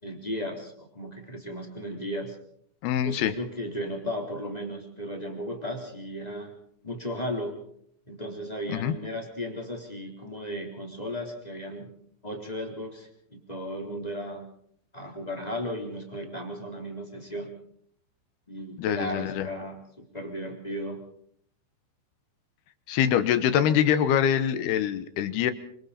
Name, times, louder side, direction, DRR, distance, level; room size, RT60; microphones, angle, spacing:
voice 1, 0.0-2.4 3.0-6.5 6.8-7.6 8.1-11.9 12.2-14.4 14.9-17.5 18.5-21.0, equal, 10° left, 1 dB, 3.1 m, -35 dB
voice 2, 2.8-3.3 8.7-8.9 18.8-19.5 22.9-25.5, left 9 dB, 70° left, 11 dB, 2.6 m, -24 dB
26.5 x 25.0 x 4.3 m, 0.66 s
omnidirectional pair, 5.6 m